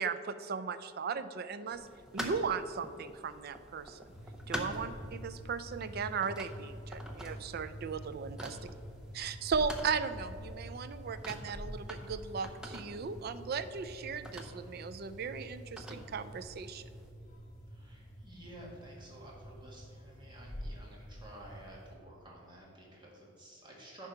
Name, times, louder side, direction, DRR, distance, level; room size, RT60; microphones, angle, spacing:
voice 1, 0.0-1.9 2.1-4.1 4.5-8.7 9.1-16.8, right 5 dB, 50° right, 13 dB, 0.4 m, -37 dB
sound 1, 1.7-17.1, equal, 5° right, 0.7 m, -47 dB
sound 2, 4.1-21.9, equal, 40° left, 1.9 m, -47 dB
voice 2, 17.7-24.1, right 1 dB, 25° right, -3 dB, 1.7 m, -52 dB
10.0 x 4.5 x 5.8 m, 2.5 s
head